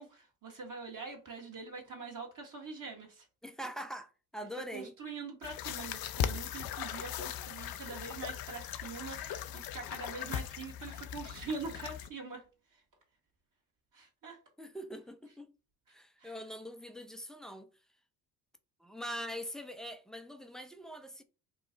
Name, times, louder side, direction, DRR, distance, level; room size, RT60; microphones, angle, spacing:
voice 1, 0.0-3.2 4.7-12.4 13.9-14.4 16.2-16.3, right 4 dB, 45° right, 1.4 m, -44 dB
voice 2, 3.4-5.0 14.6-15.5 15.9-17.7 18.8-21.2, equal, ahead, 0.4 m, -43 dB
sound 1, 5.4-12.1, left 10 dB, 55° left, 0.5 m, -39 dB
3.0 x 2.3 x 3.8 m
supercardioid pair, 70°, 45 cm